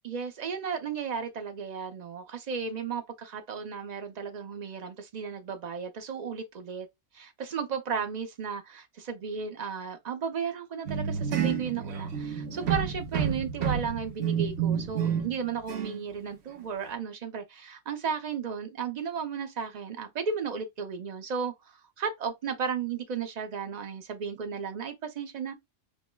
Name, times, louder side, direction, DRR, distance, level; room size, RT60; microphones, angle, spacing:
voice 1, 0.0-6.9 7.1-21.5 22.0-25.6, right 6 dB, 45° right, 0.6 m, -34 dB
sound 1, 10.9-15.4 15.7-16.0, right 7 dB, 65° right, 1.0 m, -30 dB
5.2 x 2.1 x 2.2 m
omnidirectional pair, 1.3 m